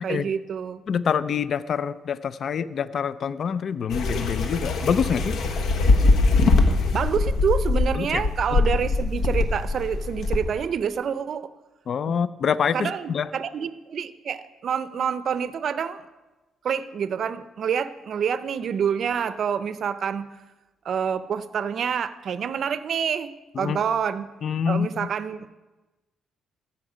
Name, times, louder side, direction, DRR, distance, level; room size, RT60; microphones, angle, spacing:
voice 1, 0.0-0.8 6.9-11.5 12.1-12.2 12.7-16.0 16.6-20.3 20.8-23.3 23.6-24.3 24.7-25.4, right 7 dB, 60° right, 14 dB, 0.5 m, -27 dB
voice 2, 0.9-5.4 8.0-8.2 11.9-13.3 23.6-23.8 24.4-25.1, left 7 dB, 55° left, 16 dB, 0.4 m, -26 dB
sound 1, 3.9-10.4, left 3 dB, 75° left, 1.1 m, -22 dB
15.0 x 5.7 x 5.0 m, 1.1 s
cardioid pair, 90°, 0 cm